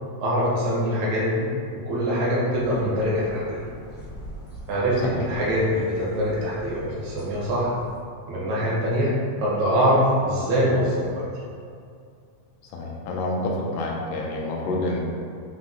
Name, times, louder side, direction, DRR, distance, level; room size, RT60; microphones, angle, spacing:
voice 1, 0.2-1.4 1.9-3.6 4.7-7.7 8.3-9.1 9.4-11.3, equal, 85° right, -7 dB, 1.1 m, -23 dB
sound 1, 2.5-8.0, equal, 65° left, 0.9 m, -42 dB
voice 2, 12.7-15.0, left 2 dB, 85° left, -1 dB, 1.4 m, -28 dB
5.5 x 2.0 x 3.6 m, 2.3 s
omnidirectional pair, 3.5 m